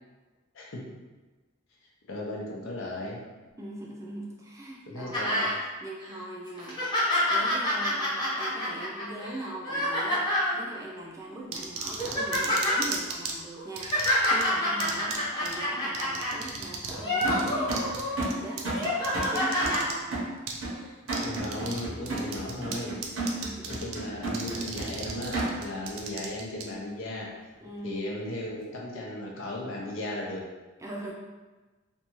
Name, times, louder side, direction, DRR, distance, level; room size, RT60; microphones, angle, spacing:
voice 1, 2.1-3.2 4.9-5.5 21.2-22.9 23.7-27.3 27.8-30.4, left 1 dB, 65° left, -2 dB, 0.6 m, -36 dB
voice 2, 3.6-6.8 7.3-10.2 10.5-20.1 23.4-23.8 27.6-28.0 30.8-31.1, right 1 dB, 15° right, -3 dB, 0.4 m, -41 dB
sound 1, 5.1-5.6 6.0-6.1 6.6-10.5 11.3-11.5 11.8-12.8 13.6-16.4 16.9-18.2 18.6-19.8 20.7-20.8, left 1 dB, 20° left, 0.8 m, -28 dB
sound 2, 11.5-13.3 13.8-14.4 14.8-15.2 15.5-15.6 15.9-17.0 17.2-19.9 20.5-20.6 21.1-21.8 22.1-22.8 23.0-24.0 24.3-26.6, right 6 dB, 90° right, 0.4 m, -35 dB
sound 3, 17.2-25.8, right 2 dB, 75° right, 0.9 m, -33 dB
2.6 x 2.3 x 2.9 m, 1.2 s
head